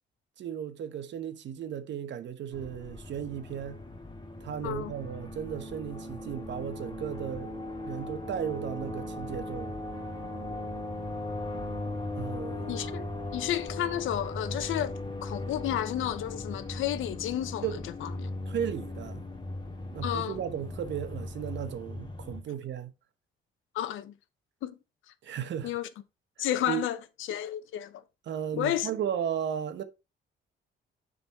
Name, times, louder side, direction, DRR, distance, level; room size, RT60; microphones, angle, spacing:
voice 1, 0.4-3.8 4.4-7.5 7.8-9.7 12.1-12.8 17.6-17.8 18.5-19.2 19.9-22.9 25.2-25.7 26.7-26.8 28.3-29.8, right 9 dB, 65° right, 1.0 m, -35 dB
sound 1, 2.5-22.4, left 2 dB, 25° left, 1.9 m, -38 dB
voice 2, 12.7-13.1 13.3-14.9 15.2-18.3 20.0-20.4 23.7-24.1 24.6-24.8 25.6-25.9 26.4-28.0 28.5-28.9, left 12 dB, 80° left, 0.8 m, -32 dB
7.0 x 4.0 x 4.5 m
cardioid pair, 90°, 20 cm